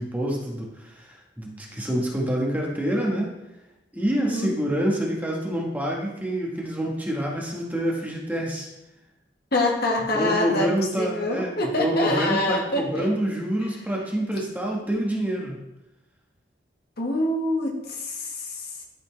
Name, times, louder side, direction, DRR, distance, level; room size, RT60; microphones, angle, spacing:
voice 1, 0.0-3.3 3.9-8.7 10.1-15.6, equal, 10° right, -2 dB, 1.2 m, -27 dB
voice 2, 4.2-4.5 9.5-13.1 17.0-18.8, left 1 dB, 60° left, 0 dB, 1.4 m, -26 dB
12.0 x 4.1 x 3.2 m, 0.91 s
head